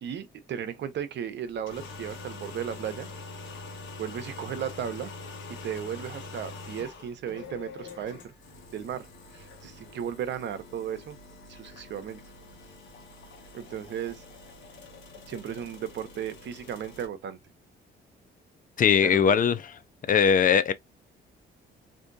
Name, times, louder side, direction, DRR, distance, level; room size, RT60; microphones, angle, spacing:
voice 1, 0.0-3.1 4.0-5.1 5.6-8.3 8.7-9.1 9.3-11.2 11.5-12.2 13.5-14.2 15.3-17.4 19.0-19.4, right 9 dB, 65° right, 0.7 m, -35 dB
sound 1, 1.5-17.1, left 3 dB, 80° left, 1.3 m, -45 dB
voice 2, 18.8-19.6 20.1-20.7, left 7 dB, 45° left, 0.4 m, -20 dB
3.6 x 2.6 x 2.6 m
cardioid pair, 90°, 20 cm